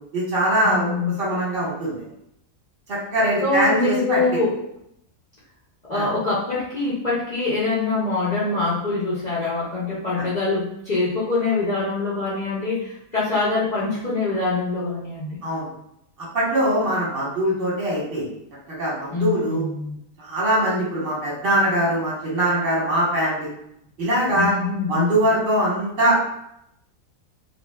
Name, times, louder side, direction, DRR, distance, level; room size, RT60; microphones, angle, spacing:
voice 1, 0.1-2.0 2.9-4.4 5.9-6.1 10.2-10.3 15.4-15.7 16.3-18.2 18.7-19.6 20.2-23.5 24.0-24.5 24.9-26.2, right 1 dB, 40° right, -5 dB, 1.1 m, -22 dB
voice 2, 0.6-1.1 3.4-4.6 5.9-15.4 19.1-20.0 24.3-25.2, left 3 dB, 65° left, -9 dB, 0.4 m, -24 dB
2.6 x 2.3 x 2.2 m, 0.77 s
omnidirectional pair, 1.6 m